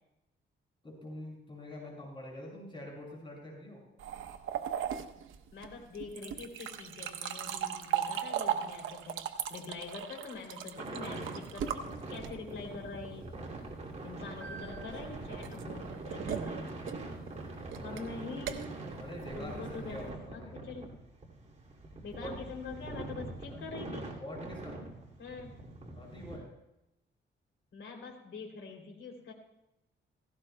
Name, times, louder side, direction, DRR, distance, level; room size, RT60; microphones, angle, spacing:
voice 1, 0.8-3.8 17.8-18.0 19.0-20.8 22.0-22.3 23.5-23.6 24.2-24.8 25.9-26.5, left 1 dB, 25° left, -3 dB, 5.9 m, -45 dB
sound 1, 4.0-12.6 14.4-20.1, right 9 dB, 85° right, 0.8 m, -38 dB
voice 2, 5.5-9.2 9.5-13.3 14.0-16.7 17.8-18.7 19.3-20.9 22.0-24.1 25.2-25.5 27.7-29.3, left 4 dB, 75° left, 1 dB, 3.0 m, -44 dB
sound 2, 10.8-26.4, right 2 dB, 35° right, 2.5 m, -43 dB
17.0 x 16.0 x 2.2 m, 0.88 s
cardioid pair, 115°, 20 cm